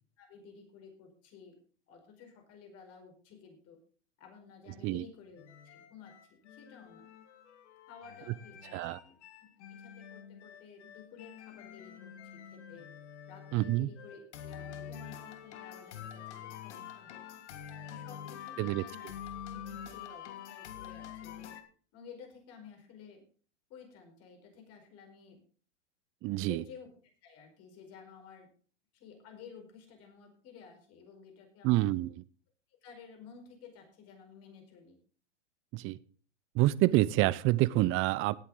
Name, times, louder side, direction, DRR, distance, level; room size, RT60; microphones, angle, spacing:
voice 1, 0.2-1.6 1.9-3.8 4.2-7.0 7.9-8.8 9.0-12.9 13.3-17.5 17.9-19.1 19.5-21.5 21.9-23.2 23.7-25.4 26.4-26.9 27.2-28.5 28.9-31.9 32.8-35.0, left 6 dB, 40° left, 5 dB, 5.0 m, -53 dB
sound 1, 5.4-21.6, left 9 dB, 70° left, 1.8 m, -47 dB
voice 2, 13.5-13.9 18.6-18.8 26.2-26.6 31.6-32.1 35.7-36.0 36.5-38.4, right 18 dB, 35° right, 20 dB, 0.7 m, -27 dB
18.0 x 8.3 x 3.9 m, 0.41 s
hypercardioid pair, 105°, 36 cm